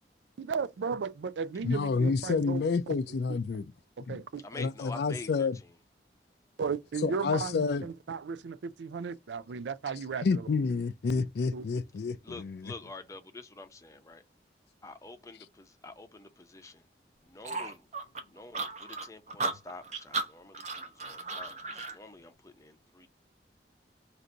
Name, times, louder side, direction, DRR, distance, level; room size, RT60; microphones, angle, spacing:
voice 1, 0.4-2.6 3.3-3.4 4.0-4.4 6.6-10.5 11.5-11.6, right 5 dB, 85° right, 0.4 m, -35 dB
voice 2, 1.6-3.7 4.1-4.2 4.6-5.6 7.0-7.9 10.2-12.7, left 4 dB, 65° left, 0.4 m, -29 dB
voice 3, 4.4-5.8 12.2-14.2 14.8-16.8 17.2-18.0 18.3-23.1, left 3 dB, 15° left, 0.6 m, -47 dB
sound 1, 17.4-22.0, right 3 dB, 40° right, 0.8 m, -35 dB
3.9 x 2.6 x 4.5 m
head